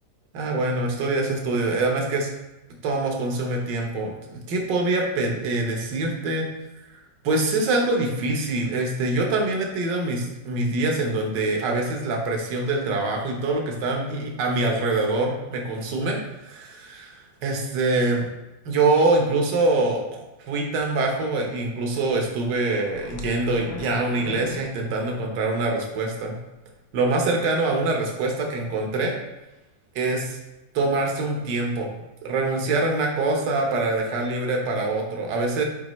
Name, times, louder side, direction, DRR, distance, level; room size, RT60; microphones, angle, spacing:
voice 1, 0.3-2.3 2.8-6.5 7.2-18.3 18.6-26.4 26.9-29.2 29.9-30.4 30.7-35.6, right 2 dB, 70° right, 1 dB, 1.7 m, -24 dB
sound 1, 22.0-25.8 26.2-26.3 26.9-27.1, left 4 dB, 80° left, 0.6 m, -40 dB
8.5 x 4.9 x 3.1 m, 1.0 s
omnidirectional pair, 2.0 m